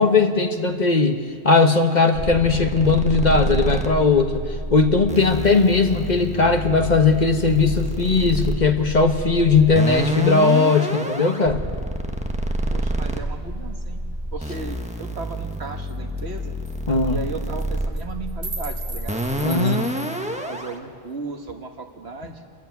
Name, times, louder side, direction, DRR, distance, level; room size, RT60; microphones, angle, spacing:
voice 1, 0.0-4.4 4.7-11.6 16.9-17.2 19.4-19.8, left 4 dB, 40° left, 6 dB, 1.3 m, -18 dB
sound 1, 2.1-20.7, right 1 dB, 5° right, 1.3 m, -28 dB
voice 2, 12.7-14.0 14.3-16.5 17.1-19.9 20.5-22.4, right 3 dB, 70° right, 4 dB, 1.9 m, -35 dB
sound 2, 15.5-15.6 15.9-16.0 16.2-16.4 16.6-16.8 17.4-17.6 18.0-20.3, right 3 dB, 45° right, 1.9 m, -37 dB
27.5 x 14.0 x 9.5 m, 2.3 s
omnidirectional pair, 1.1 m